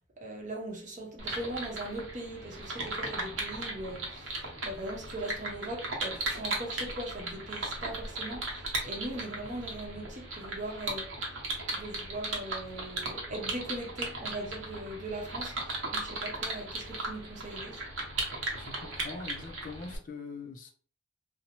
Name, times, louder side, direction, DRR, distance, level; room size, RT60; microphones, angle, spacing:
voice 1, 0.2-11.1 11.7-17.8, right 1 dB, 40° right, 0.7 m, -40 dB
sound 1, 1.2-20.0, right 2 dB, 90° right, 0.8 m, -37 dB
voice 2, 18.5-20.7, left 4 dB, 45° left, 0.4 m, -43 dB
2.7 x 2.0 x 2.8 m
head